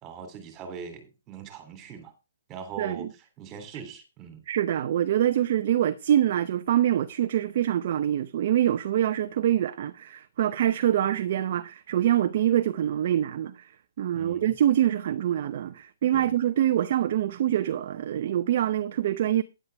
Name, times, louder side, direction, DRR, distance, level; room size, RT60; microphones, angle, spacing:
voice 1, 0.0-2.1 2.5-3.1 3.4-4.4 14.1-14.6 16.1-16.3, right 6 dB, 20° right, 3.2 m, -41 dB
voice 2, 2.8-3.1 4.5-19.4, right 11 dB, 45° right, 0.8 m, -25 dB
12.5 x 10.5 x 3.5 m
hypercardioid pair, 160°, 0 cm